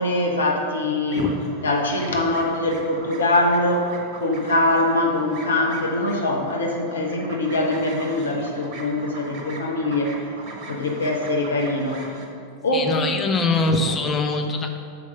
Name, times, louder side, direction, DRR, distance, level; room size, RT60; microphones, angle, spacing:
voice 1, 0.0-1.3 1.6-10.1 10.7-12.1 12.6-13.1, left 2 dB, 70° left, 1 dB, 0.9 m, -23 dB
sound 1, 1.1-12.3, right 2 dB, 45° right, 1.2 m, -39 dB
voice 2, 12.7-14.8, left 3 dB, 20° left, 3 dB, 0.8 m, -23 dB
6.9 x 4.7 x 5.6 m, 2.3 s
figure-of-eight pair, 90°, 0 cm